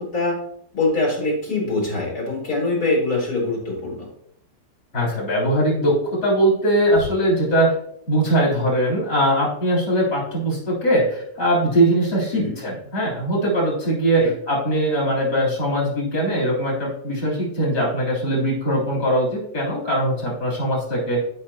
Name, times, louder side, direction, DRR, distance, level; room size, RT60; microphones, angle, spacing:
voice 1, 0.7-4.1 12.3-12.5 14.2-14.3, left 2 dB, 60° left, -5 dB, 3.9 m, -23 dB
voice 2, 4.9-7.7 8.1-21.2, right 1 dB, 85° left, -4 dB, 4.1 m, -21 dB
12.5 x 5.4 x 2.8 m, 0.71 s
omnidirectional pair, 1.8 m